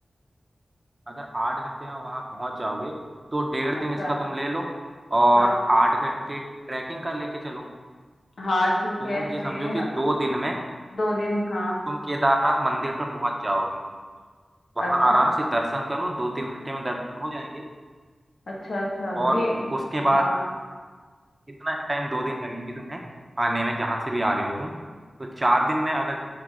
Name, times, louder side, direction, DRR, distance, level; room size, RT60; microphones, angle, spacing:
voice 1, 1.1-3.0 3.3-4.7 5.1-7.7 9.0-10.6 11.9-13.8 14.8-17.6 19.1-19.4 19.7-20.3 21.6-23.0 23.4-24.7 25.2-26.2, right 1 dB, 25° right, 1 dB, 0.9 m, -25 dB
voice 2, 8.4-9.9 10.9-11.8 14.8-15.3 18.5-19.6 20.0-20.4, left 1 dB, 80° left, -3 dB, 1.5 m, -27 dB
7.1 x 3.8 x 5.1 m, 1.5 s
wide cardioid pair, 70°, 0 cm